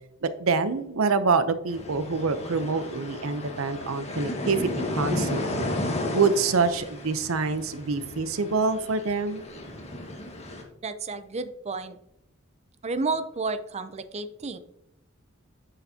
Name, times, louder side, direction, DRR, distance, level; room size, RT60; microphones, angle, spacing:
voice 1, 0.2-5.7 6.1-9.4, right 4 dB, 80° right, 12 dB, 0.7 m, -26 dB
sound 1, 1.7-10.6, left 1 dB, 30° left, 1.6 m, -34 dB
voice 2, 10.8-12.0 12.8-14.6, right 3 dB, 30° right, 11 dB, 0.6 m, -31 dB
9.9 x 6.7 x 2.8 m, 0.85 s
head